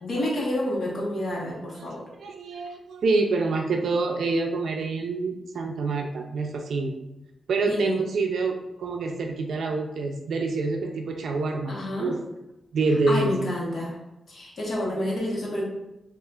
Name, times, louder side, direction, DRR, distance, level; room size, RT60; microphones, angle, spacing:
voice 1, 0.0-2.1 7.7-8.0 11.7-12.1 13.1-14.0 14.3-15.6, left 1 dB, 55° left, -3 dB, 1.1 m, -29 dB
voice 2, 1.8-6.9 7.5-12.2 12.7-13.3, right 3 dB, 80° right, 3 dB, 0.4 m, -27 dB
5.4 x 2.4 x 2.4 m, 0.94 s
wide cardioid pair, 145°, 0 cm